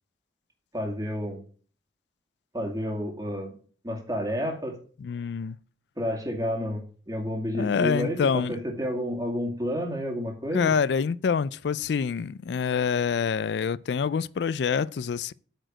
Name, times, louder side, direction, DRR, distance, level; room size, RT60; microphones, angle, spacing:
voice 1, 0.7-1.4 2.5-3.6 3.8-4.8 6.0-10.7, equal, 20° right, 2.3 m, -30 dB
voice 2, 5.0-5.6 7.5-8.6 10.5-15.3, left 6 dB, 80° left, 0.4 m, -26 dB
9.0 x 5.0 x 7.5 m
head